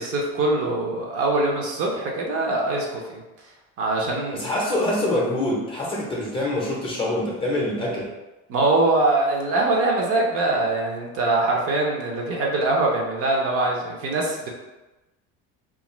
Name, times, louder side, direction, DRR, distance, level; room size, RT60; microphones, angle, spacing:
voice 1, 0.0-3.2 3.8-4.5 8.5-14.5, right 2 dB, 50° right, -1 dB, 0.6 m, -23 dB
voice 2, 4.3-8.1, left 1 dB, 15° left, -3 dB, 0.6 m, -25 dB
2.4 x 2.4 x 3.0 m, 1.1 s
cardioid pair, 135°, 30 cm